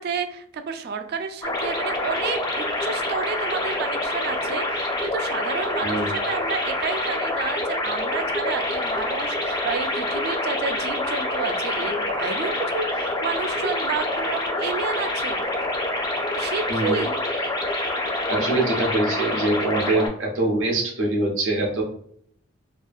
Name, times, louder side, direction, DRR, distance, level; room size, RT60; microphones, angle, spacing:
voice 1, 0.0-15.4 16.4-17.2, right 5 dB, 50° right, 8 dB, 0.3 m, -30 dB
sound 1, 1.4-20.1, left 1 dB, 20° left, 0.4 m, -26 dB
voice 2, 5.8-6.1 16.7-17.0 18.3-21.8, right 2 dB, 70° right, 0 dB, 0.7 m, -24 dB
2.7 x 2.5 x 2.3 m, 0.64 s
head